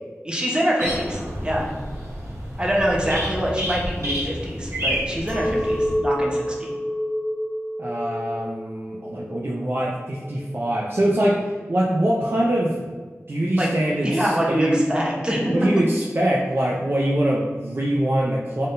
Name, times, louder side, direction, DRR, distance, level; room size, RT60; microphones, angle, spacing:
voice 1, 0.2-1.7 2.6-6.7 13.6-13.7 14.0-15.5, equal, 20° right, -3 dB, 1.0 m, -24 dB
sound 1, 0.8-6.0, equal, 75° right, 1.2 m, -30 dB
Chink clink, 5.3-10.7, equal, 25° left, 1.2 m, -28 dB
voice 2, 7.8-12.9 13.3-14.8 15.5-18.7, right 1 dB, 50° right, -3 dB, 0.5 m, -23 dB
4.0 x 3.6 x 2.6 m, 1.4 s
wide cardioid pair, 55°, 5 cm